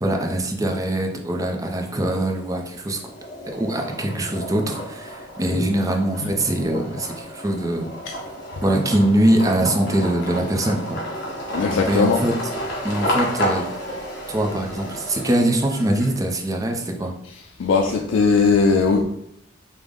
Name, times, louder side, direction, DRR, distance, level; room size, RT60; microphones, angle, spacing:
voice 1, 0.0-3.0 3.5-7.9 8.6-11.0 11.6-12.3 12.8-13.6 14.3-17.1, right 1 dB, 20° right, 3 dB, 0.4 m, -22 dB
sound 1, 1.8-2.5 2.9-16.4, equal, 60° left, 1.2 m, -31 dB
voice 2, 11.5-12.2 17.6-19.0, left 4 dB, 80° left, 3 dB, 0.3 m, -18 dB
5.0 x 2.0 x 3.6 m, 0.76 s
head